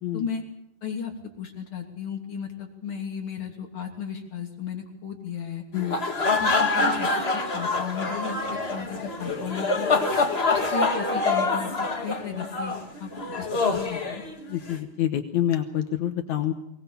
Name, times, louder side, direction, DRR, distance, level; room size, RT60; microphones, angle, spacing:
voice 1, 0.8-1.1 1.4-5.6 6.4-9.9 10.5-12.7 13.0-13.1 13.4-14.2, left 7 dB, 45° left, 2 dB, 3.7 m, -35 dB
sound 1, 5.7-14.8, left 3 dB, 25° left, 1.8 m, -26 dB
voice 2, 14.5-16.5, left 11 dB, 75° left, 8 dB, 2.4 m, -27 dB
22.0 x 19.0 x 7.1 m, 0.82 s
omnidirectional pair, 3.5 m